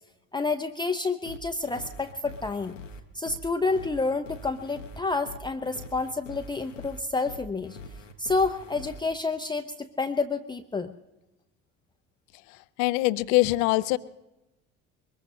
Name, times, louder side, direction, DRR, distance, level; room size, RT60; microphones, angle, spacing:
voice 1, 0.3-2.7 3.1-7.8 8.2-10.9, left 3 dB, 10° left, 6 dB, 0.7 m, -29 dB
sound 1, 1.3-9.0, left 2 dB, 80° left, 1.1 m, -44 dB
voice 2, 12.8-14.0, left 19 dB, 50° left, 17 dB, 0.6 m, -23 dB
23.0 x 21.0 x 2.7 m, 0.97 s
figure-of-eight pair, 60°, 37 cm